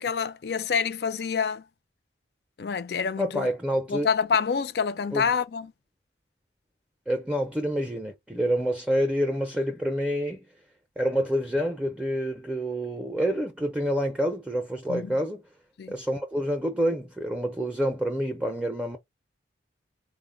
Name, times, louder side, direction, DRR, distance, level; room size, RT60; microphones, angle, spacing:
voice 1, 0.0-1.6 2.6-3.5 3.9-5.7 14.9-15.1 15.8-15.9, left 6 dB, 60° left, 0.4 m, -27 dB
voice 2, 3.2-4.1 5.1-5.2 7.1-10.4 11.0-15.4 15.9-19.0, equal, 5° right, 0.4 m, -27 dB
3.7 x 2.1 x 3.7 m
head